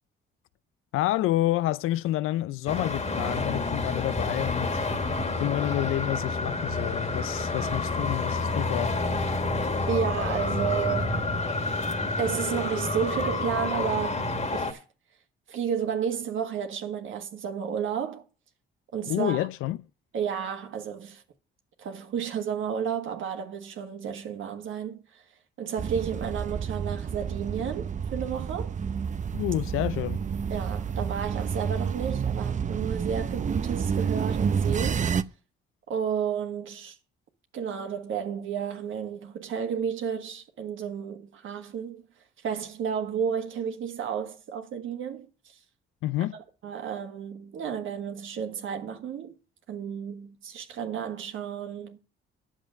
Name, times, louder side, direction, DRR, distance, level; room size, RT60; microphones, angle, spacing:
voice 1, 0.9-4.9 5.4-8.9 19.1-19.8 29.3-30.2 46.0-46.4, left 15 dB, 80° left, 0.5 m, -29 dB
Traffic noise roadway noise, 2.7-14.7, left 3 dB, 30° left, 1.9 m, -29 dB
voice 2, 9.9-11.3 12.2-14.2 14.5-14.8 15.5-18.2 18.9-19.5 20.1-21.2 21.8-25.2 25.6-28.7 30.5-35.1 35.9-37.0 37.5-42.0 42.4-45.3 46.6-49.3 49.7-52.0, right 7 dB, 70° right, 1.6 m, -32 dB
sound 1, 25.8-35.2, right 6 dB, 35° right, 0.6 m, -29 dB
9.3 x 7.2 x 6.4 m
cardioid pair, 85°, 21 cm